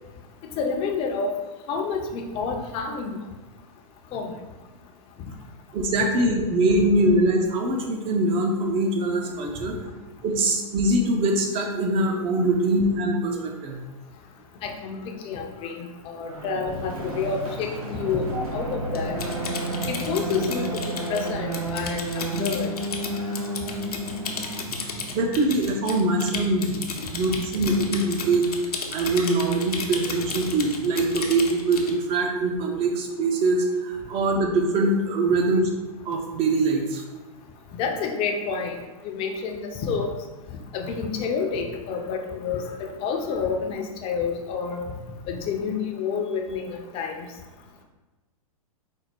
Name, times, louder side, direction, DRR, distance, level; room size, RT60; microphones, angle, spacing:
voice 1, 0.6-1.3 1.7-3.2 4.1-4.3 9.6-9.7 14.6-18.3 18.5-19.2 19.9-20.8 21.1-22.7 37.7-40.1 40.7-44.8 45.3-47.3, left 5 dB, 30° left, 3 dB, 0.6 m, -29 dB
voice 2, 5.7-9.8 10.2-13.8 18.3-18.4 25.1-26.8 27.1-28.5 28.9-35.7 36.1-37.0, right 2 dB, 30° right, 2 dB, 0.7 m, -23 dB
sound 1, 16.3-25.5, right 1 dB, 75° right, 1.3 m, -31 dB
Typing, 18.9-31.9, left 4 dB, 90° left, 0.7 m, -34 dB
4.4 x 2.1 x 4.3 m, 1.2 s
hypercardioid pair, 120°, 19 cm